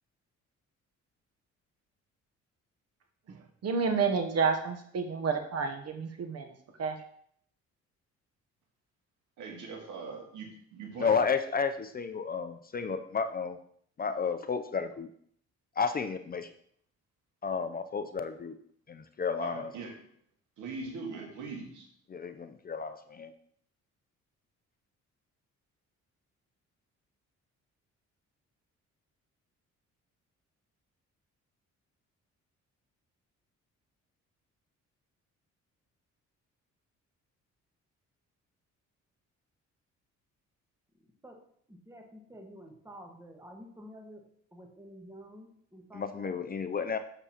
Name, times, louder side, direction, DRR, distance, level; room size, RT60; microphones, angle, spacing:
voice 1, 3.3-7.0, right 5 dB, 55° right, 6 dB, 0.9 m, -30 dB
voice 2, 9.4-11.2 19.4-19.9 20.6-21.9, right 4 dB, 85° right, 1 dB, 1.8 m, -41 dB
voice 3, 11.0-13.6 14.0-15.1 15.8-16.5 17.4-18.5 18.9-19.7 22.1-23.3 45.9-47.0, left 5 dB, 30° left, 9 dB, 0.5 m, -32 dB
voice 4, 41.7-44.2 44.5-46.4, equal, 10° right, 2 dB, 1.4 m, -50 dB
6.8 x 6.8 x 2.9 m, 0.64 s
cardioid pair, 90°, 30 cm